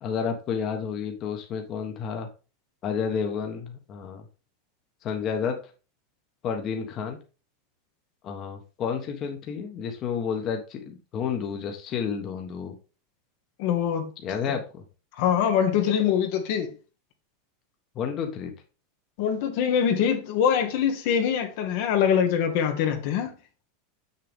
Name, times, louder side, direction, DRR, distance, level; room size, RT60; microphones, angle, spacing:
voice 1, 0.0-2.3 2.8-4.3 5.0-5.6 6.4-7.2 8.2-12.7 14.2-14.8 17.9-18.5, left 6 dB, 35° left, 1.3 m, -30 dB
voice 2, 13.6-14.1 15.2-16.7 19.2-23.3, left 8 dB, 60° left, 1.4 m, -23 dB
6.7 x 6.6 x 3.6 m
supercardioid pair, 145°, 0 cm